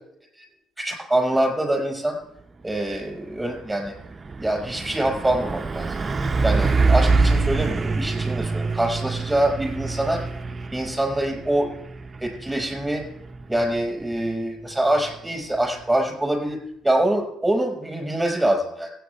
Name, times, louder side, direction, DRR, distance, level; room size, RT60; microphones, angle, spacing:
voice 1, 0.8-2.2 2.6-3.9 4.4-5.9 6.4-10.2 10.7-11.7 12.2-13.0 13.5-18.9, right 1 dB, 10° right, 2 dB, 5.5 m, -24 dB
Truck, 2.8-3.0 3.4-15.9, right 3 dB, 30° right, 0.6 m, -26 dB
16.0 x 9.0 x 3.4 m, 0.76 s
hypercardioid pair, 60°, 0 cm